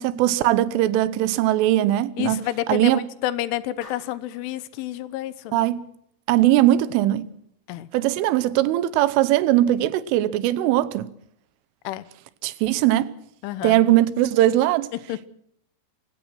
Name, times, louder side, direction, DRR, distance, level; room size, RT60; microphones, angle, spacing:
voice 1, 0.0-3.1 5.5-5.8 6.3-7.3 7.9-11.1 12.4-13.1 13.6-14.9, right 14 dB, 85° right, 3.5 m, -20 dB
voice 2, 2.2-5.6 7.7-7.9 11.8-12.0 13.4-13.8 15.1-15.2, left 14 dB, 80° left, 3.4 m, -29 dB
Clapping, 3.8-4.5, left 3 dB, 45° left, 6.3 m, -46 dB
26.5 x 16.0 x 6.0 m
omnidirectional pair, 5.6 m